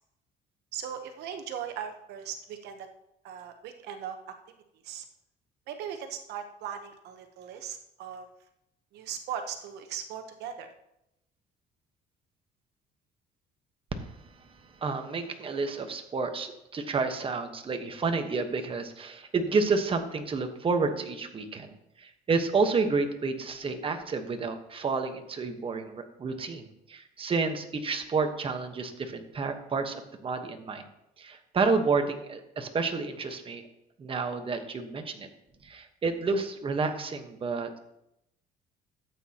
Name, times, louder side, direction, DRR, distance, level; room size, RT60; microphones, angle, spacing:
voice 1, 0.7-2.9 3.2-4.3 4.8-5.0 5.7-8.3 8.9-10.7, right 8 dB, 80° right, 7 dB, 1.0 m, -38 dB
voice 2, 13.9-30.9 31.2-33.6 34.0-35.3 35.6-37.8, right 4 dB, 30° right, 6 dB, 1.2 m, -30 dB
13.5 x 8.5 x 2.9 m, 0.83 s
cardioid pair, 110°, 17 cm